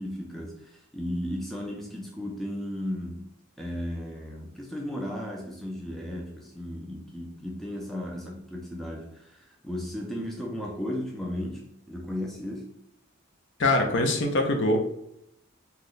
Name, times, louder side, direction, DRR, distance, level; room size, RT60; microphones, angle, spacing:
voice 1, 0.0-12.7, equal, ahead, -1 dB, 0.3 m, -35 dB
voice 2, 13.6-14.8, left 2 dB, 60° left, 4 dB, 0.5 m, -23 dB
2.9 x 2.1 x 3.9 m, 0.78 s
head